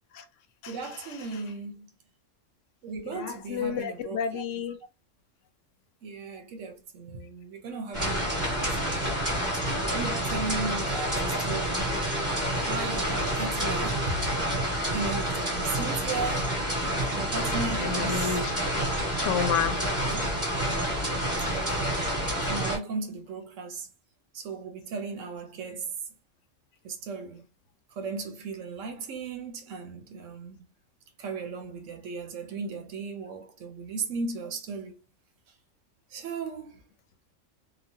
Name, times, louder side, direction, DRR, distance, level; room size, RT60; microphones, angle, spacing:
voice 1, 0.7-1.9 2.8-4.4 6.0-9.2 9.5-11.9 12.6-14.3 14.6-16.6 17.1-18.4 20.1-20.3 21.4-22.1 22.4-23.9 24.3-25.9 26.8-27.5 28.0-30.7 31.2-35.0 36.1-36.8, right 4 dB, 80° right, 1.1 m, -36 dB
voice 2, 3.0-4.8 17.8-18.5 19.2-19.9, left 7 dB, 80° left, 0.9 m, -30 dB
sound 1, 7.9-22.8, equal, 15° right, 1.5 m, -28 dB
3.0 x 2.2 x 2.6 m
omnidirectional pair, 1.3 m